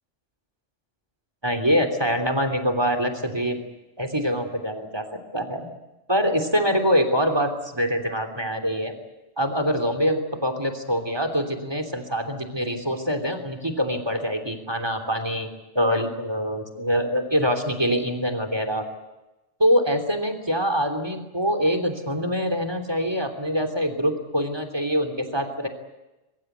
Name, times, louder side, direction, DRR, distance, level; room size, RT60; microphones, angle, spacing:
voice 1, 1.4-3.6 4.0-5.0 5.3-5.7 6.1-9.0 9.4-15.5 15.7-18.8 19.6-25.7, equal, 20° right, 6 dB, 3.3 m, -24 dB
23.5 x 23.0 x 8.1 m, 1.0 s
omnidirectional pair, 1.3 m